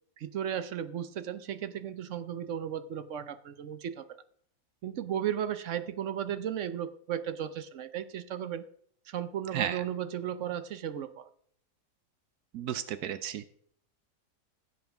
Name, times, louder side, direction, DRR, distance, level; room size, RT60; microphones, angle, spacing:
voice 1, 0.2-4.2 4.8-8.7 9.1-11.3, right 9 dB, 60° right, 12 dB, 0.9 m, -35 dB
voice 2, 9.5-9.8 12.5-13.4, right 10 dB, 80° right, 12 dB, 1.2 m, -33 dB
16.0 x 7.9 x 3.5 m, 0.63 s
omnidirectional pair, 1.7 m